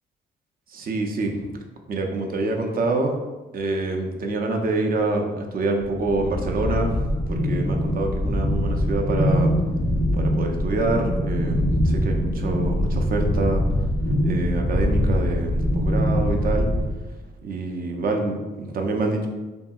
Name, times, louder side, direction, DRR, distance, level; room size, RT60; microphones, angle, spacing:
voice 1, 0.7-1.5 1.9-3.2 3.5-9.5 10.1-13.6 14.2-16.7 17.4-19.3, right 2 dB, 45° right, 2 dB, 0.5 m, -26 dB
sound 1, 5.8-16.8, equal, 10° left, 0.5 m, -23 dB
2.6 x 2.6 x 2.3 m, 1.2 s
supercardioid pair, 65°, 20 cm